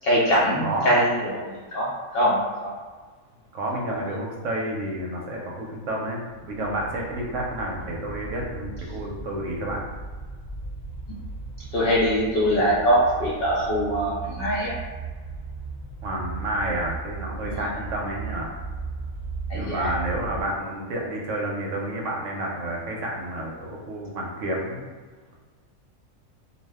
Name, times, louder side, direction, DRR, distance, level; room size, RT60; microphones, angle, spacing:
voice 1, 0.0-2.7 3.9-4.0 11.7-14.8 17.4-17.7 19.5-19.9, equal, 65° left, -6 dB, 0.6 m, -23 dB
voice 2, 0.6-1.0 3.5-9.8 16.0-18.5 19.5-24.9, right 1 dB, 70° right, -2 dB, 0.9 m, -30 dB
sound 1, 6.3-20.4, right 4 dB, 5° right, 0.9 m, -37 dB
2.4 x 2.1 x 3.3 m, 1.4 s
omnidirectional pair, 1.4 m